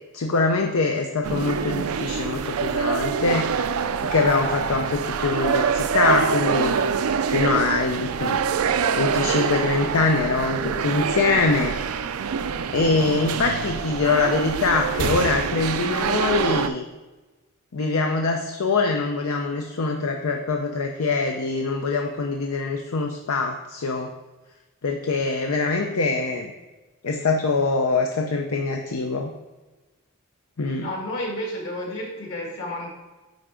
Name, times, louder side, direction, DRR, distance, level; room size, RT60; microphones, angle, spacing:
voice 1, 0.1-3.5 4.1-6.8 7.3-8.4 9.0-11.7 12.7-16.8 17.7-24.1 24.8-26.5 27.0-29.3 30.6-30.9, left 3 dB, 80° left, 3 dB, 0.6 m, -23 dB
sound 1, 1.2-16.7, right 6 dB, 80° right, 0.4 m, -25 dB
voice 2, 30.8-32.9, left 1 dB, 60° left, -2 dB, 2.2 m, -31 dB
9.2 x 4.6 x 3.8 m, 1.2 s
head